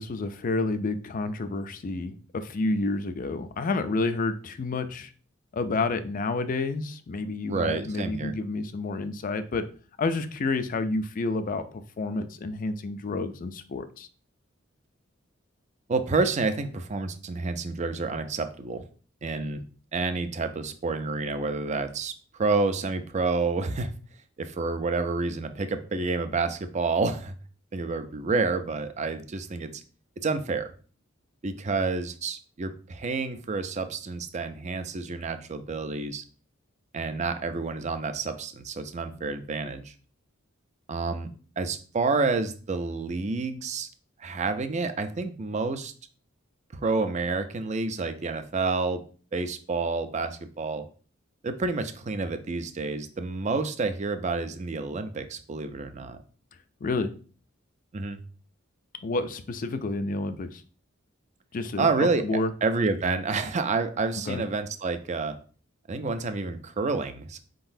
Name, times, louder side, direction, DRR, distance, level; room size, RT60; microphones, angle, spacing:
voice 1, 0.0-5.1 5.5-9.6 10.0-14.1 56.8-57.1 59.0-60.6 61.5-61.9 62.2-62.5 64.3-64.4, left 3 dB, 45° left, 10 dB, 0.4 m, -29 dB
voice 2, 7.5-8.3 15.9-18.8 19.2-19.6 19.9-23.9 24.4-27.3 27.7-29.7 30.2-30.7 31.4-36.2 36.9-39.9 40.9-41.3 41.6-43.9 44.2-45.9 46.7-49.0 49.3-50.8 51.4-56.2 57.9-58.2 61.8-62.2 62.6-65.4 65.9-67.4, right 3 dB, 35° right, 9 dB, 0.5 m, -29 dB
4.6 x 3.8 x 2.6 m, 0.40 s
head